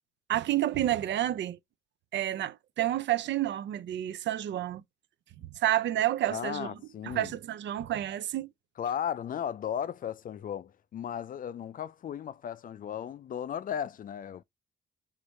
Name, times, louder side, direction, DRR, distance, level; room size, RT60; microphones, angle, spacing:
voice 1, 0.3-1.6 2.1-4.8 5.5-6.8 7.0-8.5, right 13 dB, 65° right, 0.5 m, -29 dB
voice 2, 6.3-7.3 8.8-14.4, left 9 dB, 45° left, 0.4 m, -35 dB
4.7 x 3.2 x 3.1 m
cardioid pair, 90°, 20 cm